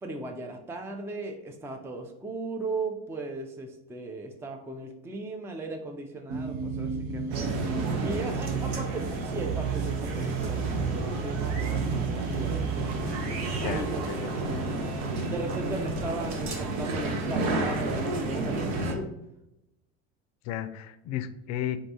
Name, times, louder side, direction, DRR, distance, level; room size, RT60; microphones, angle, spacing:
voice 1, 0.0-7.5 8.0-13.1 13.6-14.7 15.3-19.1, right 2 dB, 10° right, 4 dB, 0.4 m, -37 dB
sound 1, 6.3-14.9, right 8 dB, 60° right, 0.7 m, -34 dB
sound 2, 7.3-18.9, right 2 dB, 85° right, 0.9 m, -31 dB
voice 2, 13.6-14.4 20.4-21.8, left 10 dB, 55° left, 11 dB, 0.4 m, -34 dB
4.5 x 2.6 x 2.7 m, 0.88 s
supercardioid pair, 110°, 33 cm